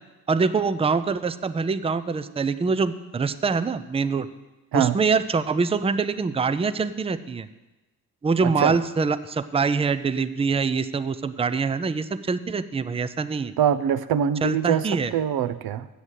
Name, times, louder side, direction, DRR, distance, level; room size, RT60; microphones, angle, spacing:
voice 1, 0.3-4.3 4.7-7.5 8.2-13.5 14.4-15.1, right 4 dB, 15° right, 14 dB, 0.4 m, -24 dB
voice 2, 8.4-8.8 13.6-15.9, right 9 dB, 65° right, 14 dB, 0.6 m, -23 dB
7.8 x 7.2 x 8.2 m, 1.1 s
cardioid pair, 75°, 40 cm